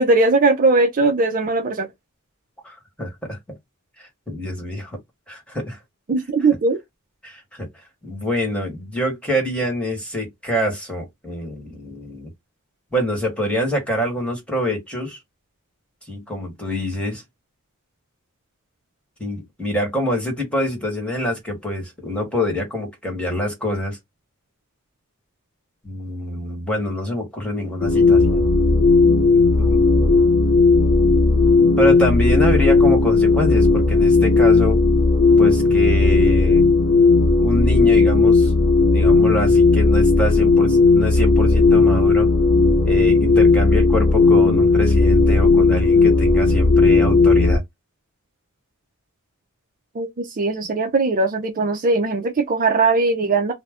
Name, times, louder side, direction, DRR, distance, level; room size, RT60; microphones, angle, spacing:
voice 1, 0.0-1.9 6.1-6.8 49.9-53.5, right 3 dB, 40° right, 0.5 m, -19 dB
voice 2, 2.6-3.6 4.0-5.0 5.3-5.8 7.2-7.7 8.0-12.3 12.9-15.2 16.1-17.2 19.2-24.0 25.8-28.4 29.3-29.8 31.8-34.8 35.4-36.7 37.4-38.5 38.9-42.3 42.8-47.6, left 1 dB, 5° left, 1.2 m, -25 dB
sound 1, 27.8-47.6, left 3 dB, 80° left, 0.7 m, -15 dB
2.5 x 2.1 x 3.4 m
head